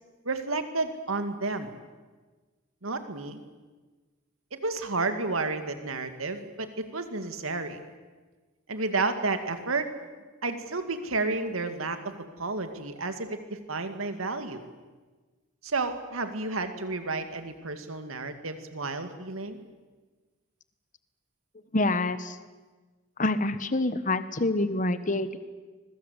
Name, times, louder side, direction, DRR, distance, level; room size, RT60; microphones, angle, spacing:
voice 1, 0.2-1.7 2.8-3.4 4.5-7.8 8.7-9.9 10.4-14.6 15.6-19.6, right 3 dB, 90° right, 8 dB, 2.3 m, -31 dB
voice 2, 21.7-22.4 23.2-25.4, left 2 dB, 40° left, 12 dB, 1.3 m, -26 dB
25.5 x 22.0 x 8.2 m, 1.3 s
head